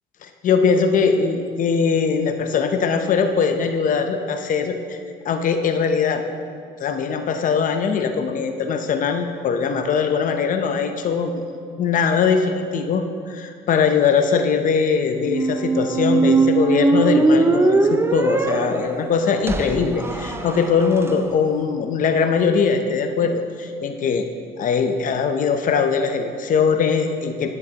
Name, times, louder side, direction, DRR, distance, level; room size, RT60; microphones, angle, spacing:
voice 1, 0.2-5.0 5.2-6.2 6.8-11.3 11.8-13.0 13.3-24.3 24.6-27.5, left 5 dB, 50° left, 6 dB, 0.7 m, -21 dB
Squeak, 15.2-21.1, right 3 dB, 15° right, 0.4 m, -20 dB
11.0 x 9.7 x 2.9 m, 2.3 s
cardioid pair, 110°, 17 cm